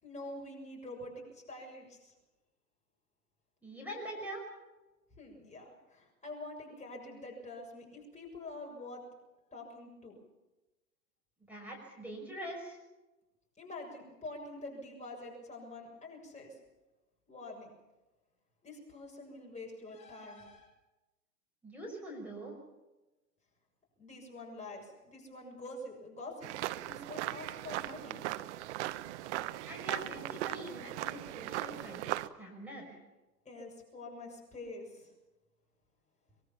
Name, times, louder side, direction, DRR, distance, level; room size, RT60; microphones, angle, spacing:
voice 1, 0.0-2.1 5.2-9.0 9.5-10.2 13.6-16.6 17.3-17.7 18.6-20.7 24.0-28.2 33.4-35.1, left 2 dB, 15° left, 0 dB, 6.7 m, -46 dB
voice 2, 3.6-4.4 11.5-12.8 21.6-22.5 29.7-32.1 32.4-33.0, right 1 dB, 5° right, -1 dB, 5.9 m, -43 dB
sound 1, 26.4-32.3, right 16 dB, 45° right, 1.1 m, -38 dB
23.5 x 23.5 x 7.1 m, 1.1 s
hypercardioid pair, 115°, 47 cm